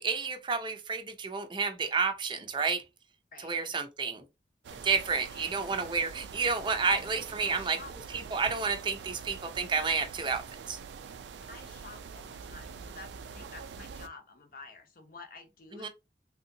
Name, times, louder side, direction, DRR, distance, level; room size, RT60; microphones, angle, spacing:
voice 1, 0.0-2.8 3.4-4.2 4.8-7.8 8.1-10.8 15.7-15.9, right 5 dB, 25° right, 0.5 m, -30 dB
sound 1, 4.6-14.1, right 5 dB, 85° right, 0.4 m, -45 dB
voice 2, 4.7-5.0 5.3-5.7 7.4-7.9 11.4-15.9, left 4 dB, 50° left, 0.6 m, -50 dB
3.4 x 2.7 x 2.6 m
head